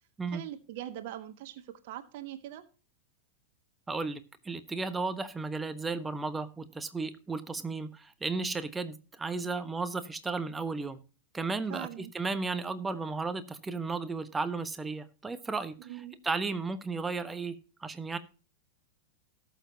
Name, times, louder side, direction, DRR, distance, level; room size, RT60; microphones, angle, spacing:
voice 1, 0.3-2.6 11.7-12.1 15.8-16.2, right 12 dB, 50° right, 11 dB, 1.3 m, -42 dB
voice 2, 3.9-11.0 11.3-18.2, right 4 dB, 10° right, 12 dB, 1.2 m, -34 dB
18.5 x 7.2 x 2.8 m, 0.34 s
figure-of-eight pair, 90°, 0 cm